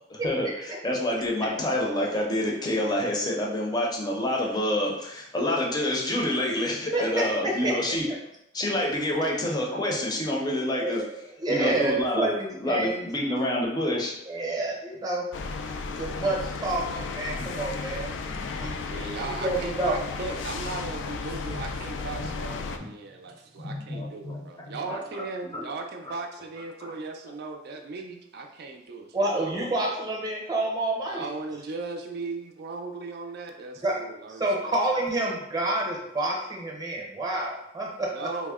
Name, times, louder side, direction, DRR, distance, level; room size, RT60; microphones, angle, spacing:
voice 1, 0.8-8.0 8.5-11.0 11.5-12.3 12.6-14.1 17.4-17.5 18.2-18.6 22.2-22.3 22.8-22.9 23.6-24.4 24.7-25.0 25.5-25.6 26.8-26.9, left 1 dB, 20° left, -2 dB, 0.6 m, -27 dB
voice 2, 6.9-8.0 10.8-13.1 14.3-15.3 15.9-18.1 18.6-19.1 19.4-20.0 29.1-31.3 33.8-34.0 34.3-38.1, right 2 dB, 20° right, -1 dB, 0.7 m, -28 dB
sound 1, 15.3-22.8, left 4 dB, 70° left, 0.3 m, -34 dB
voice 3, 18.9-29.9 31.0-34.8 38.1-38.5, right 3 dB, 55° right, 3 dB, 0.4 m, -37 dB
3.4 x 2.0 x 3.5 m, 0.82 s
head